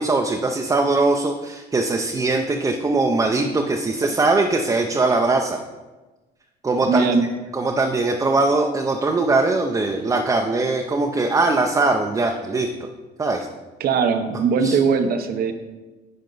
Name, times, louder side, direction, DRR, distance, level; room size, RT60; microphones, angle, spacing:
voice 1, 0.0-5.6 6.6-7.1 7.5-12.7 13.2-13.5 14.6-14.8, right 3 dB, 20° right, 2 dB, 0.6 m, -21 dB
voice 2, 6.9-7.2 13.8-15.5, right 5 dB, 65° right, 8 dB, 0.8 m, -20 dB
10.5 x 4.4 x 3.9 m, 1.2 s
cardioid pair, 110°, 17 cm